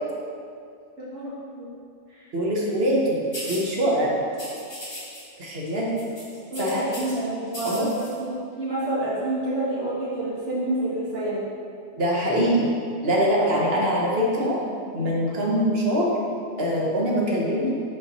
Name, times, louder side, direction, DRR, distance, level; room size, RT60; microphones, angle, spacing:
voice 1, 1.0-1.6 2.1-2.3 2.7-2.8 6.5-11.4 13.4-13.7 14.1-14.2 14.7-14.8, right 1 dB, 80° right, -9 dB, 2.1 m, -29 dB
voice 2, 2.3-4.2 5.4-5.9 6.6-6.8 7.6-7.9 12.0-12.7 13.0-14.6 14.9-16.1 16.6-17.8, equal, 55° right, -4 dB, 1.3 m, -23 dB
sound 1, 3.3-3.7 4.3-5.2 5.5-5.7 6.0-7.1 7.5-8.1, equal, 25° left, 1.3 m, -37 dB
5.6 x 4.8 x 4.0 m, 2.4 s
omnidirectional pair, 1.2 m